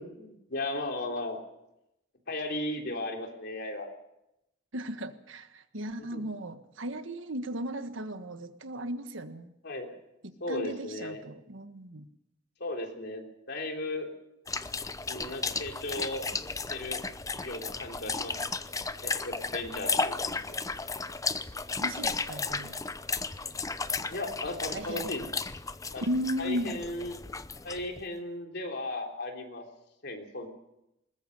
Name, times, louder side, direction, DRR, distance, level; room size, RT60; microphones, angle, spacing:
voice 1, 0.0-1.4 2.3-3.9 6.1-6.2 9.6-10.0 10.4-11.2 12.6-14.1 15.1-16.3 16.7-17.0 17.3-18.5 19.0-20.5 24.1-25.3 25.9-26.0 26.4-27.2 27.6-29.6 30.0-30.5, left 2 dB, 60° left, 3.5 m, -36 dB
voice 2, 4.7-9.5 10.2-12.1 21.8-22.8 24.7-25.1 26.0-26.7, equal, 80° right, 1.5 m, -36 dB
sound 1, 14.5-28.0, left 4 dB, 15° left, 0.7 m, -34 dB
21.0 x 20.0 x 6.7 m
head